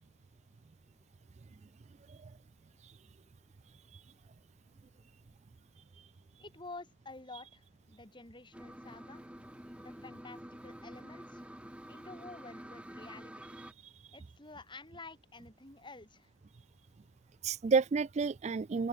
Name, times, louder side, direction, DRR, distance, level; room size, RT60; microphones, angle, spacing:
voice 1, 6.4-9.3 9.8-11.5 11.9-13.4 14.1-16.3, left 3 dB, 25° left, 2.9 m, -50 dB
sound 1, 8.5-13.7, equal, 5° right, 3.8 m, -49 dB
voice 2, 17.4-18.9, right 5 dB, 35° right, 0.3 m, -31 dB
open air
head